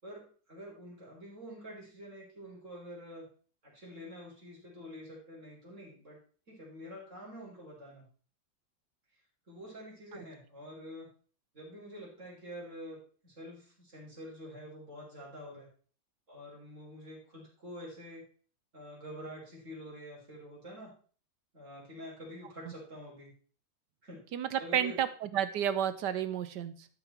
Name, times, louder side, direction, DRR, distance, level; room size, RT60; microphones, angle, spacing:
voice 1, 0.0-3.3 3.6-6.2 6.5-8.1 9.5-11.1 11.5-13.0 13.2-15.7 16.3-18.2 18.7-20.9 21.5-23.3 24.0-24.3 24.6-25.0, equal, 40° right, -5 dB, 4.6 m, -47 dB
voice 2, 24.3-26.9, right 9 dB, 65° right, 12 dB, 1.3 m, -31 dB
13.0 x 5.6 x 4.4 m, 0.41 s
omnidirectional pair, 2.1 m